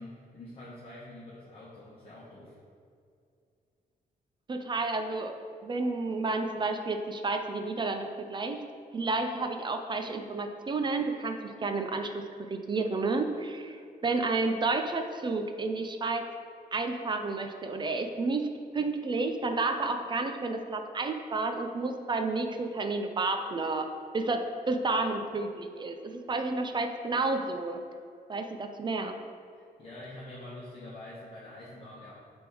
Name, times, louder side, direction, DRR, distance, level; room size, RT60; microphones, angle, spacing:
voice 1, 0.0-2.6 29.5-32.1, left 1 dB, 35° left, -7 dB, 1.1 m, -46 dB
voice 2, 4.5-5.4 5.6-8.6 8.9-13.8 14.0-16.3 16.7-18.5 18.7-23.9 24.1-27.8 28.3-29.2, right 3 dB, 30° right, 5 dB, 0.4 m, -31 dB
6.7 x 3.5 x 6.0 m, 2.4 s
wide cardioid pair, 155°, 16 cm